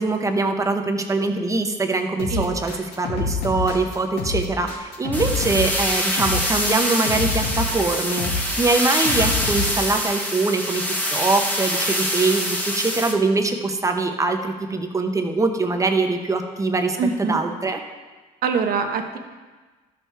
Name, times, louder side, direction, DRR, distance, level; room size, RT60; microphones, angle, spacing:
voice 1, 0.0-10.8 11.1-17.8, right 3 dB, 20° right, 4 dB, 0.9 m, -23 dB
sound 1, 2.2-9.9, left 3 dB, 80° left, 2.1 m, -27 dB
sound 2, 5.1-13.1, equal, 10° left, 1.2 m, -25 dB
voice 2, 17.0-17.4 18.4-19.2, right 5 dB, 60° right, 5 dB, 1.1 m, -24 dB
13.0 x 6.5 x 3.4 m, 1.3 s
cardioid pair, 110°, 17 cm